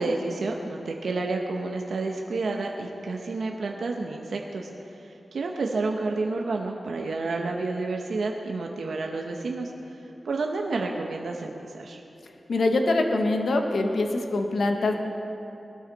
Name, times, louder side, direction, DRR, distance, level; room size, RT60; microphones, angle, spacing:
voice 1, 0.0-4.7 5.3-9.7 10.2-12.0, right 3 dB, 80° right, 1 dB, 0.9 m, -30 dB
voice 2, 12.5-14.9, left 2 dB, 75° left, 3 dB, 1.1 m, -24 dB
19.5 x 13.0 x 4.1 m, 2.9 s
wide cardioid pair, 85°, 0 cm